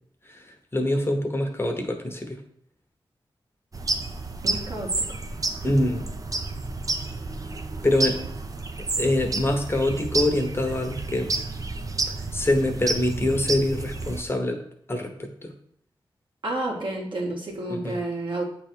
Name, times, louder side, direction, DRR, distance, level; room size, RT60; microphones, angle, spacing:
voice 1, 0.7-2.4 5.6-6.1 7.8-8.2 9.0-11.3 12.3-14.6 14.9-15.5 17.7-18.0, left 1 dB, 25° left, 4 dB, 1.0 m, -25 dB
sound 1, 3.7-14.2, right 3 dB, 40° right, 0.6 m, -30 dB
voice 2, 4.4-5.0 16.4-18.4, right 2 dB, 65° right, -2 dB, 1.7 m, -30 dB
8.4 x 3.4 x 4.5 m, 0.66 s
wide cardioid pair, 90°, 9 cm